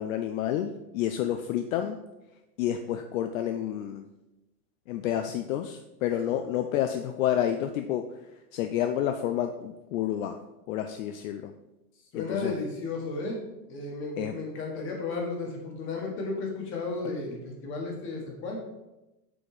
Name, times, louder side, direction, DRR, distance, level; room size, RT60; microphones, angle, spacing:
voice 1, 0.0-2.0 2.6-4.0 4.9-10.4 10.7-11.5 12.1-12.5 14.2-14.4, left 10 dB, 60° left, 7 dB, 0.6 m, -29 dB
voice 2, 12.1-13.4 13.7-18.6, left 3 dB, 25° left, 1 dB, 1.5 m, -33 dB
7.7 x 4.2 x 4.9 m, 0.98 s
supercardioid pair, 170°, 46 cm